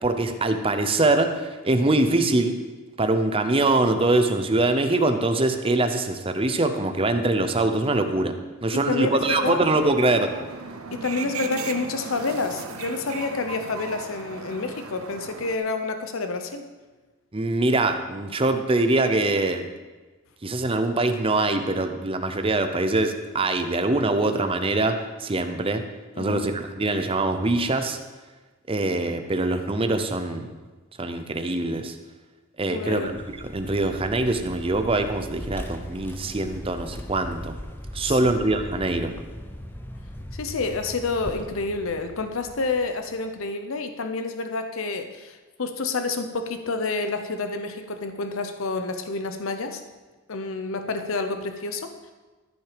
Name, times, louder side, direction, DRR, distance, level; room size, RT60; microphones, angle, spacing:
voice 1, 0.0-2.6 3.0-8.3 8.6-10.3 17.3-19.6 20.4-25.8 26.2-28.0 28.7-30.5 31.0-32.0 32.6-33.2 33.5-37.6 37.9-39.1, right 2 dB, 25° right, 7 dB, 0.7 m, -23 dB
voice 2, 8.7-9.6 10.9-16.6 26.2-26.4 32.7-33.1 38.1-38.3 40.3-49.8 50.3-52.1, left 3 dB, 70° left, 7 dB, 0.7 m, -29 dB
sound 1, 9.2-15.6, right 5 dB, 85° right, 0.8 m, -37 dB
Vehicle, 33.0-43.3, equal, 10° left, 0.6 m, -39 dB
14.0 x 6.1 x 5.0 m, 1.2 s
head